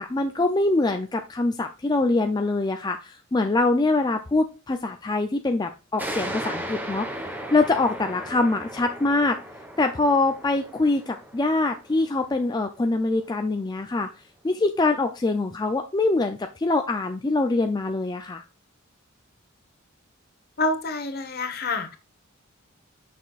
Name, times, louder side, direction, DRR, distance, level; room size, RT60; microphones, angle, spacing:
voice 1, 0.0-7.2 7.5-9.4 9.8-14.1 14.4-18.4, left 2 dB, 20° left, 5 dB, 0.4 m, -24 dB
sound 1, 6.0-13.2, equal, 10° right, 1.0 m, -36 dB
voice 2, 20.6-22.0, left 2 dB, 50° left, 8 dB, 1.1 m, -27 dB
6.9 x 6.0 x 2.4 m, 0.31 s
head